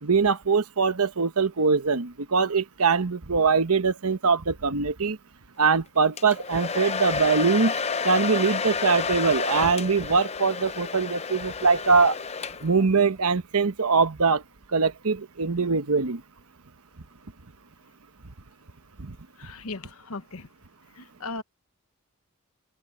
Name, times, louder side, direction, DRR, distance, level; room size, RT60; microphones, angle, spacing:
voice 1, 0.0-5.2 5.6-7.7 8.0-12.2 12.6-14.4 14.7-16.2 19.0-19.2, right 4 dB, 85° right, 1.2 m, -22 dB
Domestic sounds home sounds, 6.2-12.9, left 5 dB, 30° left, 0.7 m, -30 dB
voice 2, 19.4-20.5 21.0-21.4, left 3 dB, 75° left, 1.1 m, -37 dB
open air
head